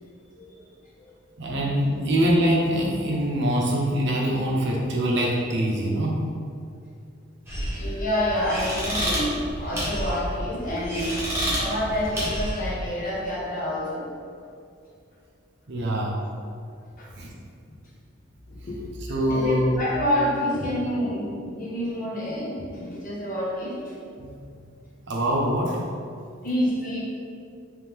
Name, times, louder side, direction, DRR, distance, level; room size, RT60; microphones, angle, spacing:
voice 1, 1.4-6.3 15.7-16.2 17.2-17.3 19.1-19.8 24.2-24.4 25.1-25.8, equal, 60° right, -3 dB, 0.6 m, -24 dB
sound 1, 7.5-12.7, equal, 10° right, 1.2 m, -29 dB
voice 2, 7.8-14.1 17.0-17.1 18.7-18.8 19.1-23.9 26.4-27.0, equal, 40° left, -6 dB, 0.9 m, -28 dB
3.3 x 3.2 x 3.5 m, 2.4 s
head